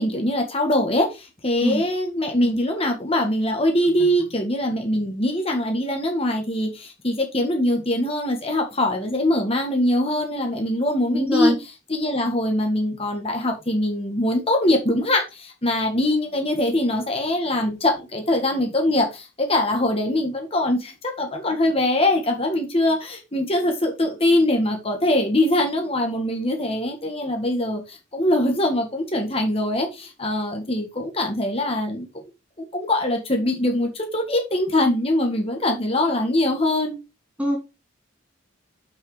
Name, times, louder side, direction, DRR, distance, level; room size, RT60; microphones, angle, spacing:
voice 1, 0.0-11.6 11.9-32.1 32.6-37.0, left 1 dB, 30° left, 2 dB, 1.9 m, -22 dB
voice 2, 11.1-11.6 37.4-37.6, equal, 5° right, 2 dB, 2.4 m, -22 dB
6.6 x 6.4 x 5.0 m, 0.27 s
head